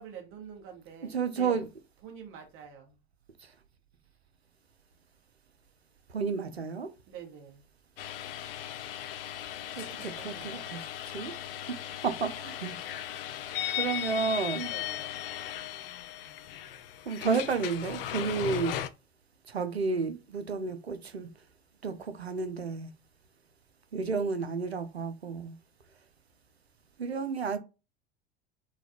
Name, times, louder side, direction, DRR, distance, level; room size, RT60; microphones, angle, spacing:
voice 1, 0.0-1.7 2.0-3.0 7.1-7.6 9.7-10.9 14.6-15.3, right 7 dB, 45° right, 1.5 m, -47 dB
voice 2, 1.1-1.6 3.4-3.5 6.1-6.9 9.8-11.3 11.7-11.8 12.0-13.0 13.2-13.3 13.7-14.7 17.1-18.8 19.5-21.3 21.8-22.9 23.9-25.5 27.0-27.6, right 5 dB, 85° right, 0.5 m, -31 dB
sound 1, 8.0-18.9, left 11 dB, 65° left, 0.4 m, -37 dB
3.8 x 2.3 x 2.9 m
figure-of-eight pair, 75°, 31 cm